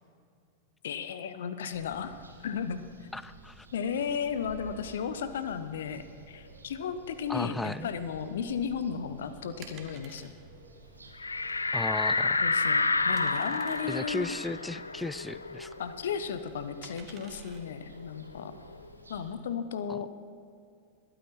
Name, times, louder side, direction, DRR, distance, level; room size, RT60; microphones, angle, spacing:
voice 1, 0.8-3.1 3.7-10.3 12.4-14.3 15.8-18.5 19.1-20.1, left 7 dB, 60° left, 12 dB, 0.9 m, -35 dB
sound 1, 1.6-19.4, right 3 dB, 80° right, 1.6 m, -53 dB
voice 2, 3.1-3.7 7.3-7.9 11.7-12.4 13.9-15.8 19.9-20.0, left 2 dB, 5° left, 17 dB, 0.4 m, -35 dB
sound 2, 8.3-19.0, right 6 dB, 35° right, 1.6 m, -55 dB
sound 3, 11.2-16.4 16.7-16.8 17.2-18.8, left 3 dB, 80° left, 0.5 m, -30 dB
21.5 x 9.1 x 4.4 m, 2.4 s
figure-of-eight pair, 90°, 0 cm